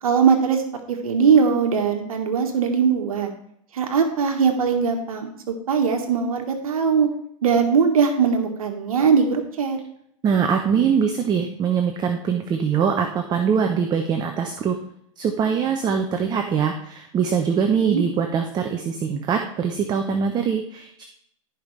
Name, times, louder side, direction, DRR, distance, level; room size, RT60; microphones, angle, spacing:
voice 1, 0.0-3.3 3.7-7.1 7.4-9.8 17.9-18.0, right 6 dB, 75° right, 4 dB, 1.4 m, -20 dB
voice 2, 10.2-14.8 15.2-21.0, right 6 dB, 25° right, 5 dB, 0.8 m, -23 dB
15.0 x 5.3 x 3.2 m, 0.70 s
hypercardioid pair, 120°, 18 cm